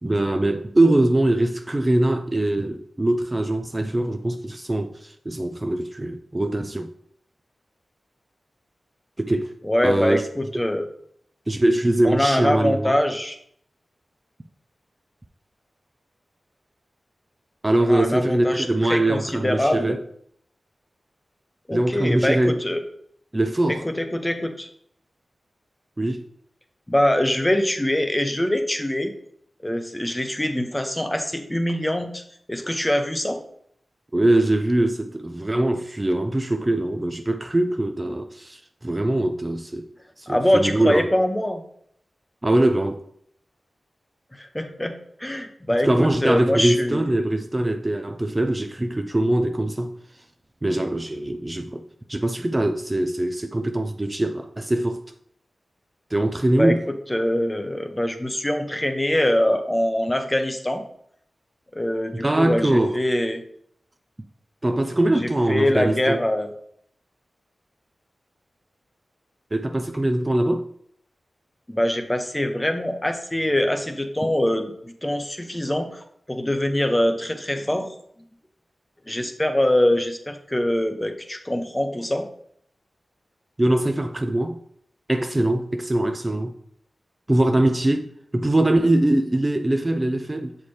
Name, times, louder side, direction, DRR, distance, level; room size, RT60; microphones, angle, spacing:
voice 1, 0.0-6.9 9.2-9.5 9.8-10.2 11.5-12.9 17.6-20.0 21.7-22.6 23.3-23.8 26.0-26.3 34.1-39.9 40.2-41.1 42.4-43.0 45.8-50.0 50.6-55.0 56.1-56.8 62.2-63.0 64.6-66.2 69.5-70.7 74.2-74.3 83.6-84.6 85.1-86.5 87.3-88.1 88.3-90.6, right 1 dB, 20° right, 0.3 m, -22 dB
voice 2, 9.6-10.9 12.0-13.4 17.8-20.0 21.7-22.8 23.8-24.7 26.9-29.1 29.6-32.2 32.5-33.4 40.3-41.6 44.3-44.9 45.2-47.1 56.6-56.7 57.1-60.8 61.7-63.4 65.2-66.5 71.7-76.0 76.3-77.9 79.1-82.3, left 1 dB, 15° left, 0.7 m, -23 dB
7.1 x 4.3 x 3.2 m
wide cardioid pair, 95°, 0 cm